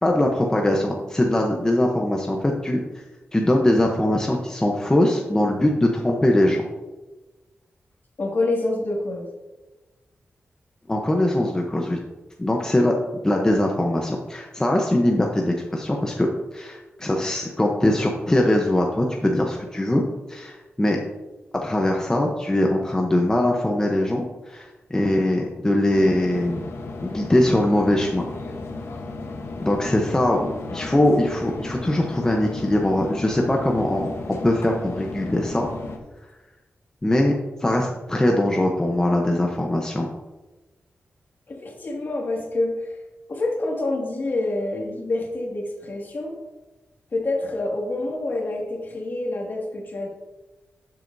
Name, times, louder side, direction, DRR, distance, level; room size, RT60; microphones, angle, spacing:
voice 1, 0.0-2.8 3.3-6.6 10.9-12.0 12.4-12.9 13.2-20.0 20.3-21.0 21.6-26.6 27.0-28.3 29.6-34.1 34.4-35.7 37.0-37.3 37.6-40.1, left 1 dB, 15° left, 0 dB, 0.8 m, -21 dB
voice 2, 8.2-9.3 41.5-43.0 43.3-46.4 47.1-50.1, left 2 dB, 50° left, -1 dB, 2.1 m, -27 dB
sound 1, 25.9-36.0, left 3 dB, 75° left, 1.0 m, -35 dB
12.5 x 7.7 x 2.7 m, 1.1 s
wide cardioid pair, 125°, 4 cm